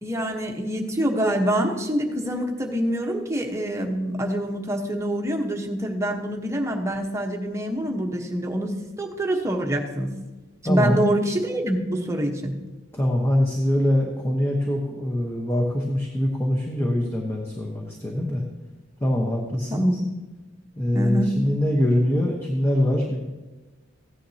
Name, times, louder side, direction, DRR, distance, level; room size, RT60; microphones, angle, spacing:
voice 1, 0.0-8.7 9.0-10.1 10.6-12.6 19.7-20.0 20.9-21.3, right 1 dB, 15° right, 1 dB, 1.1 m, -25 dB
voice 2, 10.6-11.0 12.9-18.4 19.0-19.9 20.8-23.3, left 1 dB, 15° left, -1 dB, 1.0 m, -23 dB
15.5 x 9.9 x 2.8 m, 1.2 s
head